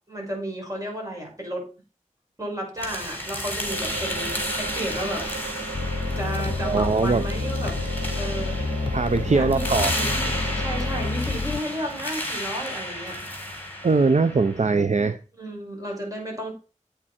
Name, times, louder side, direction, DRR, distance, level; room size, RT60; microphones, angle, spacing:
voice 1, 0.1-1.6 2.4-5.3 6.2-7.7 8.2-8.6 9.3-13.3 15.4-16.5, equal, 25° right, 6.1 m, -33 dB
sound 1, 2.8-14.7, left 1 dB, 15° left, 3.9 m, -32 dB
sound 2, 3.6-11.1, right 4 dB, 80° right, 1.0 m, -36 dB
sound 3, 5.7-11.6, left 4 dB, 45° left, 0.4 m, -29 dB
voice 2, 6.6-7.2 8.9-9.9 13.8-15.2, right 4 dB, 60° right, 0.6 m, -21 dB
8.9 x 8.7 x 4.3 m
wide cardioid pair, 50°, 13 cm